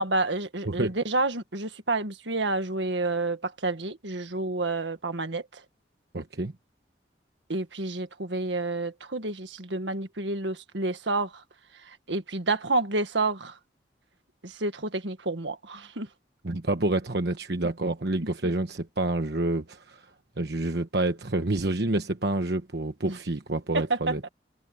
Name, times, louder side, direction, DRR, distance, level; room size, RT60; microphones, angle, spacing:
voice 1, 0.0-5.6 7.5-11.4 11.7-13.6 14.4-16.1 18.2-18.5 23.1-23.2 23.7-24.3, right 2 dB, 80° right, 1.8 m, -29 dB
voice 2, 6.1-6.5 16.4-20.1 20.4-24.2, right 2 dB, 65° right, 1.2 m, -28 dB
head